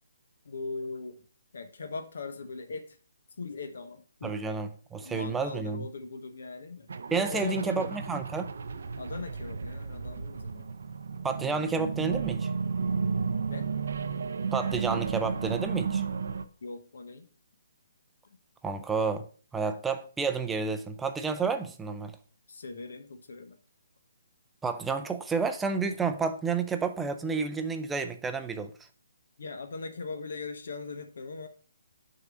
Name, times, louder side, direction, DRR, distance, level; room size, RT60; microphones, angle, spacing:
voice 1, 0.4-1.2 1.5-3.0 3.4-4.4 5.0-6.9 7.3-7.9 9.0-10.7 13.5-13.7 16.6-17.3 22.5-23.6 29.4-31.5, left 4 dB, 70° left, 0.9 m, -40 dB
voice 2, 4.2-5.9 7.1-8.5 11.2-12.5 14.5-16.0 18.6-19.3 19.5-22.1 24.6-28.7, right 5 dB, 5° right, 0.5 m, -30 dB
sound 1, 6.9-16.4, right 5 dB, 70° right, 0.6 m, -33 dB
6.4 x 3.9 x 6.1 m
hypercardioid pair, 160°, 0 cm